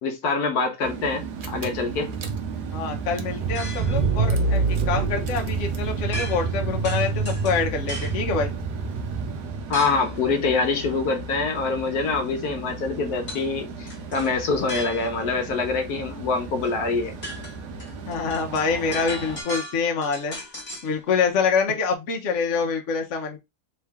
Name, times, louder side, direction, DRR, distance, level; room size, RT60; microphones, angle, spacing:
voice 1, 0.0-2.1 9.7-17.1, left 4 dB, 70° left, 1.3 m, -25 dB
sound 1, 0.8-19.4, right 4 dB, 75° right, 1.4 m, -36 dB
Car / Engine, 1.1-1.2 1.4-9.8, right 4 dB, 55° right, 0.5 m, -27 dB
voice 2, 2.7-8.5 18.0-20.4 20.8-23.4, left 5 dB, 55° left, 1.1 m, -26 dB
sound 2, 3.5-4.1 6.1-6.6 6.8-8.2 9.7-10.1 13.3-13.5 13.9-15.3 16.6-16.7 17.0-20.9, left 1 dB, 25° left, 1.5 m, -36 dB
3.7 x 3.2 x 3.4 m
omnidirectional pair, 1.7 m